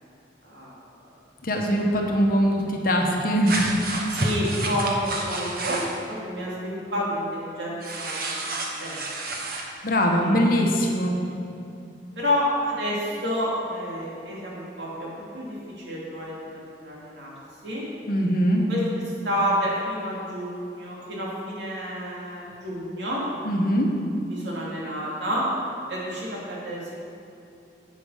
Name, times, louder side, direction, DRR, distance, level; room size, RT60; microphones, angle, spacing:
voice 1, 0.4-0.7 4.1-9.0 9.3-9.4 10.2-10.8 12.2-17.3 17.6-17.8 18.7-18.8 19.0-23.2 24.3-25.4 25.9-26.9, equal, 80° right, -5 dB, 2.6 m, -30 dB
voice 2, 1.4-3.7 9.8-11.1 18.1-18.6 23.4-23.9, equal, 55° left, 1 dB, 1.1 m, -22 dB
sound 1, 3.4-6.0 7.8-9.6, right 2 dB, 55° right, 1.1 m, -29 dB
8.3 x 7.7 x 5.5 m, 2.6 s
head